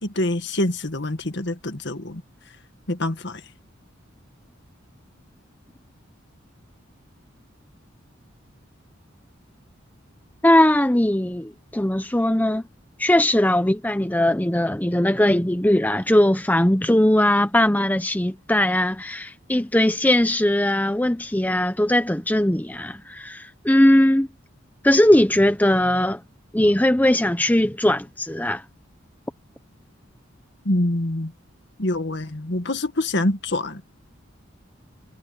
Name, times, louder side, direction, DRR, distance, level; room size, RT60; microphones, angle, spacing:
voice 1, 0.0-2.2 2.9-3.4 30.7-31.3 31.8-33.8, left 1 dB, 60° left, 1.9 m, -25 dB
voice 2, 10.4-12.6 13.0-24.3 24.8-26.2 26.5-28.6, left 1 dB, 10° left, 0.8 m, -19 dB
head